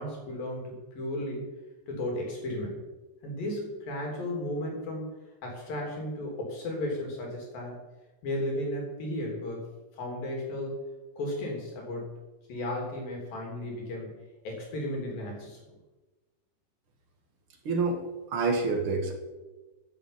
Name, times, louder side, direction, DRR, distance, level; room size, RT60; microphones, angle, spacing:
voice 1, 0.0-1.5 1.9-2.8 3.2-5.1 5.4-7.8 8.2-9.6 9.9-10.7 11.2-12.1 12.5-14.1 14.4-15.6, left 1 dB, 55° left, 0 dB, 4.9 m, -34 dB
voice 2, 17.6-19.1, right 3 dB, 55° right, 3 dB, 1.5 m, -28 dB
12.0 x 8.7 x 8.9 m, 1.2 s
omnidirectional pair, 5.1 m